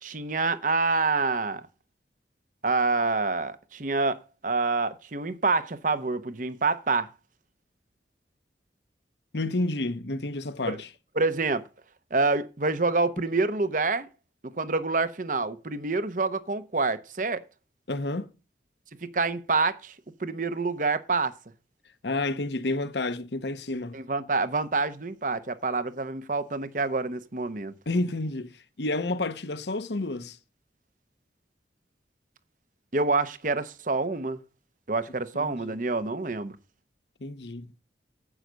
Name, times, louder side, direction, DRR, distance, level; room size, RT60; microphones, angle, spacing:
voice 1, 0.0-1.6 2.6-7.1 10.7-10.8 11.2-11.7 12.1-14.1 14.6-17.4 19.0-19.9 20.2-21.3 23.9-27.7 32.9-34.4 34.9-36.6, right 3 dB, 50° right, 0.9 m, -27 dB
voice 2, 9.3-10.9 17.9-18.3 22.0-24.0 27.9-30.4 35.4-35.7 37.2-37.7, left 2 dB, 80° left, 1.0 m, -30 dB
9.9 x 8.0 x 6.3 m
head